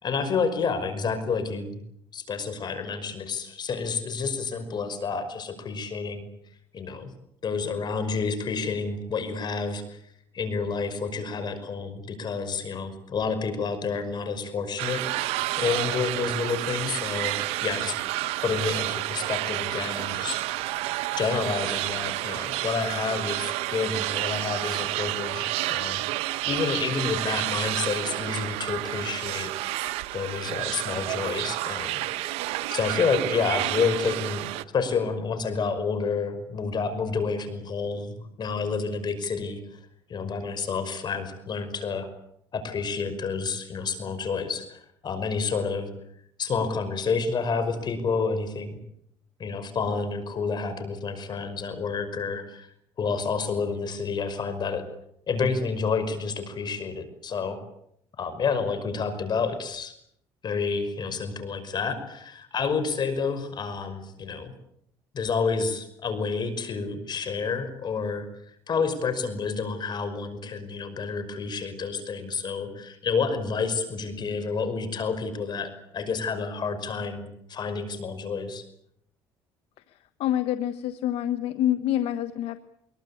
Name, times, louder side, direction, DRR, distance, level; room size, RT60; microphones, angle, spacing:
voice 1, 0.0-1.8 2.1-6.3 6.7-7.1 7.4-10.0 10.3-15.0 15.6-18.0 18.4-20.8 21.2-26.0 26.4-29.5 30.1-32.3 32.7-39.6 40.1-42.1 42.5-45.9 46.4-48.8 49.4-52.7 53.0-54.9 55.3-57.6 58.2-59.9 60.4-64.5 65.1-68.3 68.7-78.6, left 5 dB, 45° left, 10 dB, 5.6 m, -29 dB
sound 1, 14.8-34.6, right 17 dB, 85° right, 1.1 m, -30 dB
voice 2, 80.2-82.6, left 12 dB, 75° left, 10 dB, 1.3 m, -26 dB
24.5 x 22.5 x 8.6 m, 0.73 s
cardioid pair, 90°, 10 cm